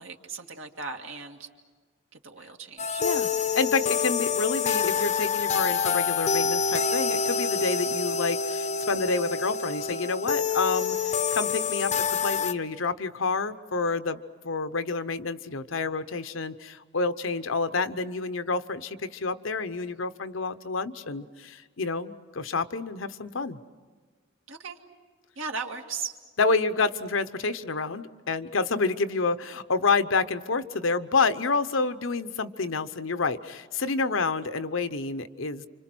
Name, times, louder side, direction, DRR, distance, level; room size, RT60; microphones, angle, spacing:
voice 1, 0.0-1.5 2.2-3.0 24.5-24.8 25.4-26.1, right 4 dB, 75° right, 3 dB, 2.1 m, -37 dB
sound 1, 2.8-12.5, left 6 dB, 35° left, 0.7 m, -27 dB
voice 2, 3.0-14.2 14.4-23.6 26.4-35.7, left 4 dB, 70° left, 11 dB, 0.9 m, -28 dB
29.5 x 26.0 x 6.2 m, 1.5 s
head